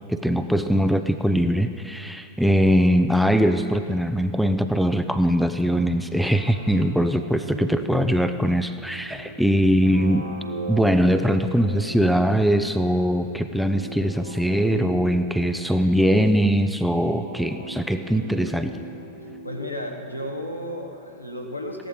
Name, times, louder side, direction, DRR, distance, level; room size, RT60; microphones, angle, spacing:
voice 1, 0.1-10.3 10.7-18.7, equal, ahead, 8 dB, 0.6 m, -21 dB
sound 1, 6.1-20.7, right 2 dB, 75° right, 1.3 m, -39 dB
voice 2, 19.4-21.9, equal, 90° left, 1 dB, 1.4 m, -33 dB
16.0 x 10.5 x 5.2 m, 2.6 s
figure-of-eight pair, 90°, 0 cm